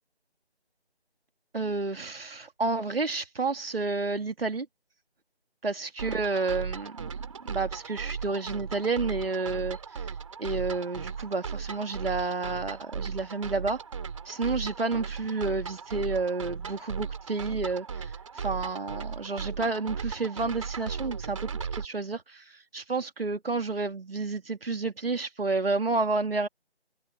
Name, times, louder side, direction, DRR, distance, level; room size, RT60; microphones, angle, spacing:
voice 1, 1.5-4.7 5.6-7.1 7.4-9.8 10.4-13.8 14.3-18.1 18.4-22.4 22.7-26.5, right 3 dB, 60° right, 2.6 m, -30 dB
sound 1, 6.0-21.8, right 6 dB, 30° right, 3.4 m, -37 dB
figure-of-eight pair, 160°, 33 cm